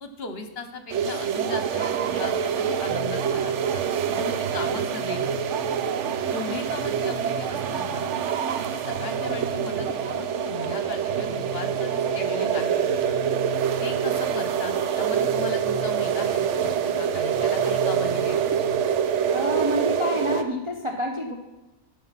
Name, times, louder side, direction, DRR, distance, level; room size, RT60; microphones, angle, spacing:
voice 1, 0.0-3.8 4.2-5.3 6.3-8.1 8.7-13.2 13.8-18.4 18.6-18.9, left 4 dB, 55° left, 7 dB, 1.1 m, -37 dB
sound 1, 0.9-20.4, right 8 dB, 70° right, 0.9 m, -26 dB
sound 2, 2.9-18.2, left 1 dB, 55° right, 1.3 m, -40 dB
voice 2, 19.3-21.3, left 1 dB, 25° right, 0 dB, 0.9 m, -28 dB
13.0 x 5.3 x 5.9 m, 1.1 s
omnidirectional pair, 1.3 m